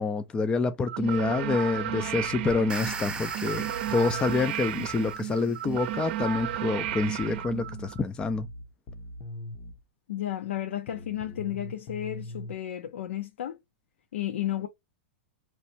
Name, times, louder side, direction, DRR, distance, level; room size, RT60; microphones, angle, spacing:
voice 1, 0.0-8.5, left 4 dB, 15° left, 0.4 m, -27 dB
sound 1, 0.9-8.0, right 12 dB, 60° right, 0.6 m, -33 dB
sound 2, 1.9-4.5 6.2-9.8 10.9-12.5, left 1 dB, 40° left, 0.7 m, -42 dB
sound 3, 2.5-5.7, right 5 dB, 15° right, 0.8 m, -39 dB
voice 2, 10.1-13.6 14.1-14.7, left 12 dB, 80° left, 0.7 m, -33 dB
4.2 x 3.1 x 2.7 m
hypercardioid pair, 130°, 6 cm